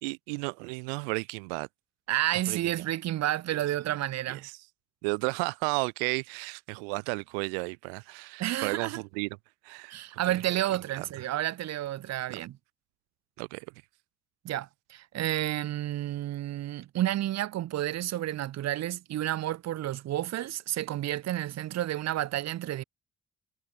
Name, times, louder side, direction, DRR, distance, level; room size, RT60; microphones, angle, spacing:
voice 1, 0.0-1.7 2.3-2.7 4.3-4.6 5.0-9.3 9.6-10.0 10.2-10.4 10.9-11.1 12.3-12.4 13.4-13.7, right 38 dB, 85° right, 0.9 m, -33 dB
voice 2, 2.1-4.5 8.4-9.0 9.9-12.6 14.4-22.8, right 13 dB, 60° right, 1.0 m, -31 dB
hypercardioid pair, 50°, 29 cm